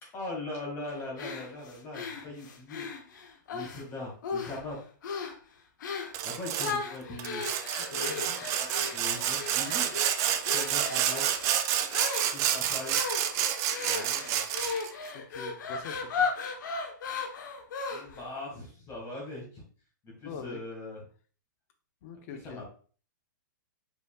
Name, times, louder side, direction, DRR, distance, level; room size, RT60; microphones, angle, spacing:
voice 1, 0.0-2.9 3.5-4.8 6.2-7.4 8.6-9.9 10.4-11.3 12.3-13.1 13.8-14.4 17.9-19.6 20.0-21.0 22.3-22.7, left 2 dB, 25° left, -2 dB, 1.9 m, -40 dB
sound 1, 1.2-3.8 4.2-4.7 5.0-5.4 5.8-6.2 6.6-18.3, left 5 dB, 70° left, 1.0 m, -36 dB
Sawing, 6.1-6.8 7.2-14.9, right 10 dB, 30° right, 0.4 m, -29 dB
voice 2, 7.8-8.4 15.1-16.3 17.0-17.1 20.2-20.6 22.0-22.7, left 6 dB, 45° left, 7 dB, 0.8 m, -42 dB
5.4 x 4.2 x 2.3 m, 0.41 s
hypercardioid pair, 145°, 11 cm